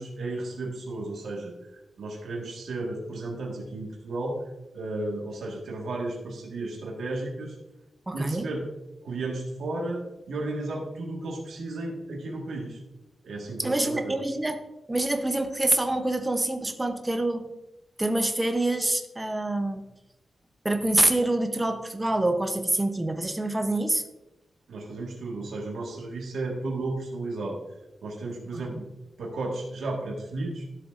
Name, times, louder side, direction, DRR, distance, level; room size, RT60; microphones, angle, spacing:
voice 1, 0.0-4.4 4.7-7.6 8.1-8.6 9.0-12.8 13.2-14.1 24.7-27.6 28.0-28.9 29.2-30.7, right 2 dB, 90° right, -2 dB, 1.6 m, -33 dB
voice 2, 8.1-8.5 13.6-14.6 14.9-17.5 18.0-19.9 20.6-24.0 28.5-28.8, right 2 dB, 15° right, 6 dB, 0.7 m, -26 dB
13.0 x 7.8 x 2.5 m, 0.95 s
wide cardioid pair, 145°, 0 cm